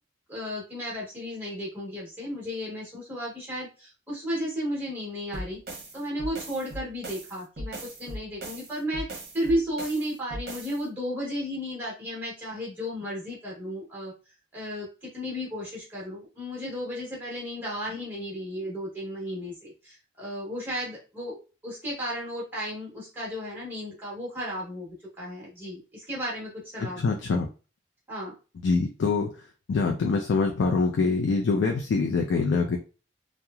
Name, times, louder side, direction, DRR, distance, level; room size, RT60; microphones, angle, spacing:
voice 1, 0.3-5.6 5.9-14.1 14.5-21.4 21.6-27.0 28.1-28.3, equal, 10° right, -5 dB, 1.0 m, -34 dB
sound 1, 5.3-10.8, right 1 dB, 55° right, 0.7 m, -39 dB
voice 2, 26.8-27.5 28.6-29.3 29.7-32.8, left 4 dB, 85° left, 2 dB, 0.4 m, -24 dB
3.0 x 2.0 x 2.3 m, 0.33 s
head